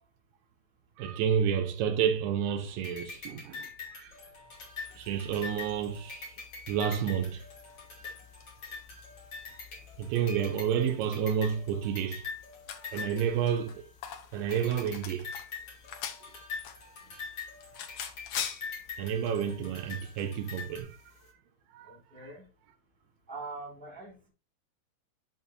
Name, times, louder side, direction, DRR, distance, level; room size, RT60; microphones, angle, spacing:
voice 1, 1.0-4.1 4.9-6.4 6.7-7.4 9.5-9.6 10.0-12.3 12.9-13.9 14.3-15.3 19.0-21.0 21.7-22.0, right 8 dB, 80° right, 2.4 m, -30 dB
sound 1, 2.8-14.1 14.5-20.8, left 5 dB, 40° left, 3.6 m, -44 dB
sound 2, 4.5-21.3, left 8 dB, 70° left, 1.8 m, -46 dB
voice 2, 21.8-22.5 23.3-24.3, right 3 dB, 5° left, 1.7 m, -44 dB
11.0 x 4.9 x 2.7 m
omnidirectional pair, 4.0 m